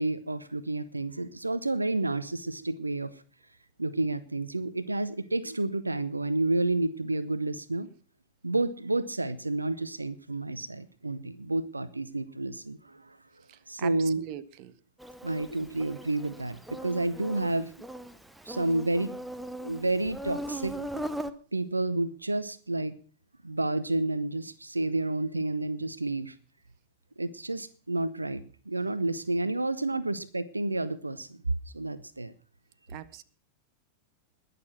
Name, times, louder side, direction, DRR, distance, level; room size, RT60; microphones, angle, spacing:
voice 1, 0.0-3.1 3.8-7.9 8.4-13.2 13.7-14.3 15.2-17.7 18.4-19.1 19.6-20.7 21.5-23.0 23.4-26.3 27.2-31.4 31.7-32.3, right 2 dB, 80° right, 0.7 m, -30 dB
voice 2, 13.8-14.7 32.9-33.2, right 12 dB, 45° right, 0.8 m, -41 dB
Insect, 15.0-21.3, right 1 dB, 5° right, 0.9 m, -39 dB
20.0 x 6.8 x 5.9 m
figure-of-eight pair, 90°, 0 cm